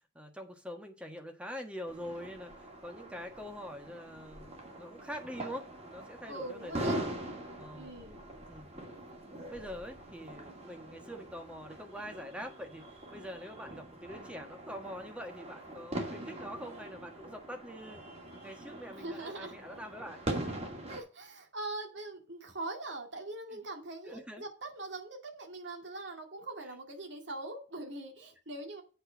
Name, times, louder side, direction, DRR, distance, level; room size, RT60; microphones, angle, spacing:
voice 1, 0.1-7.1 7.6-7.9 8.5-8.8 9.5-12.8 13.1-18.1 18.4-20.2 20.5-20.6 23.5-23.6 24.0-24.4, equal, 5° right, 1.3 m, -44 dB
sound 1, 1.9-21.0, right 1 dB, 30° right, 2.3 m, -42 dB
voice 2, 6.3-7.0 7.7-8.2 19.0-19.5 20.9-28.8, right 2 dB, 65° right, 2.2 m, -42 dB
8.0 x 4.4 x 7.1 m
head